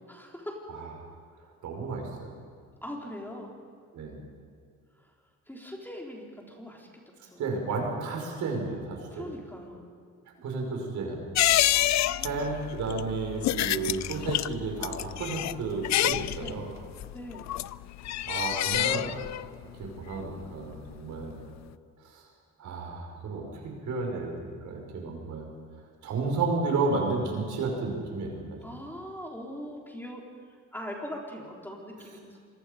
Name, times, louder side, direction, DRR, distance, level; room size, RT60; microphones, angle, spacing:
voice 1, 0.1-0.6 2.8-3.5 5.0-5.1 5.5-6.9 7.3-7.5 9.1-9.8 12.0-12.7 16.4-16.6 17.1-17.5 28.6-32.4, equal, 5° left, -1 dB, 4.0 m, -41 dB
voice 2, 1.6-2.3 3.9-4.2 7.4-9.3 10.4-11.2 12.2-16.7 18.3-19.2 19.8-21.4 22.0-22.2 22.6-25.5 26.0-28.6, right 3 dB, 75° right, 1 dB, 5.3 m, -32 dB
sound 1, 11.3-21.3 21.6-21.7, left 13 dB, 65° left, 0.5 m, -28 dB
26.0 x 21.5 x 5.2 m, 2.1 s
cardioid pair, 90°, 30 cm